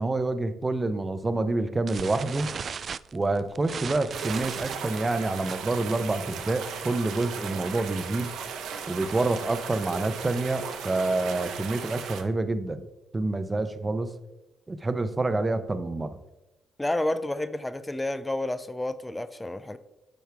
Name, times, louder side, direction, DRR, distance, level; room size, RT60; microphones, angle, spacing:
voice 1, 0.0-2.5 3.1-8.3 8.9-12.8 13.1-14.1 14.7-16.2, right 2 dB, 20° right, 11 dB, 0.8 m, -27 dB
sound 1, 1.9-7.5 7.8-8.0 8.3-8.4 8.7-9.0 9.5-11.0, right 6 dB, 50° right, 0.3 m, -38 dB
sound 2, 4.1-12.2, right 6 dB, 85° right, 1.1 m, -36 dB
voice 2, 16.8-19.8, left 1 dB, 10° left, 12 dB, 0.5 m, -30 dB
10.5 x 6.4 x 3.5 m, 0.96 s
cardioid pair, 90°, 0 cm